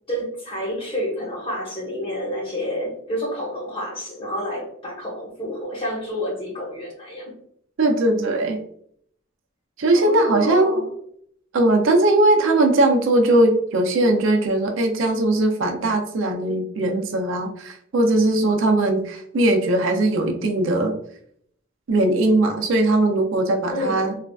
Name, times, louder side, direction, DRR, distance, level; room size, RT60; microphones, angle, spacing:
voice 1, 0.1-7.3 9.9-10.9 23.7-24.2, equal, 25° left, -3 dB, 0.9 m, -29 dB
voice 2, 7.8-8.6 9.8-10.8 11.5-21.0 21.9-24.1, right 2 dB, 75° right, 4 dB, 0.5 m, -19 dB
3.2 x 2.3 x 2.3 m, 0.67 s
head